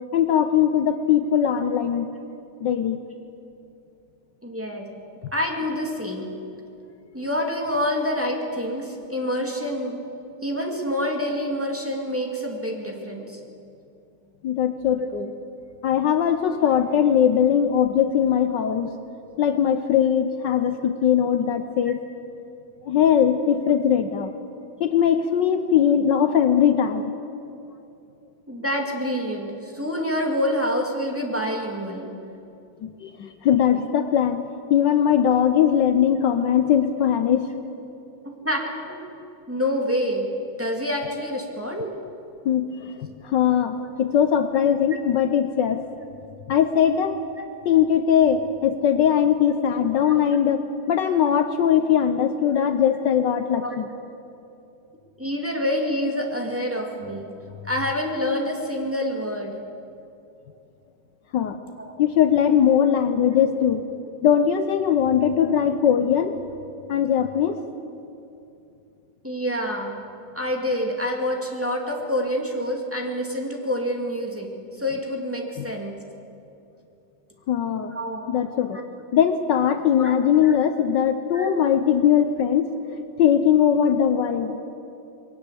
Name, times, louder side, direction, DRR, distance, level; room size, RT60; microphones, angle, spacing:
voice 1, 0.1-2.1 2.6-3.0 14.4-15.3 15.8-18.9 19.4-22.0 22.8-24.3 24.8-27.1 32.8-34.4 34.7-37.5 42.4-42.9 43.2-45.8 46.5-47.2 47.6-53.9 61.3-61.6 62.0-63.8 64.2-66.3 66.9-67.6 75.6-75.7 77.5-78.0 78.3-78.8 79.1-82.7 83.2-84.6, left 9 dB, 65° left, 9 dB, 1.4 m, -20 dB
voice 2, 4.4-4.9 5.3-6.3 7.1-10.1 10.4-13.4 15.0-15.1 28.5-32.1 38.2-39.1 39.5-40.3 40.6-41.9 47.4-47.5 50.1-50.2 52.4-52.6 53.5-53.8 55.2-57.3 57.6-59.6 61.8-61.9 69.2-70.0 70.3-74.5 74.8-76.0 77.9-78.3 78.7-78.8 80.0-80.1 80.4-80.6 81.3-81.5 84.5-84.6, equal, 5° right, 0 dB, 2.3 m, -27 dB
21.5 x 18.5 x 8.4 m, 2.7 s
omnidirectional pair, 2.2 m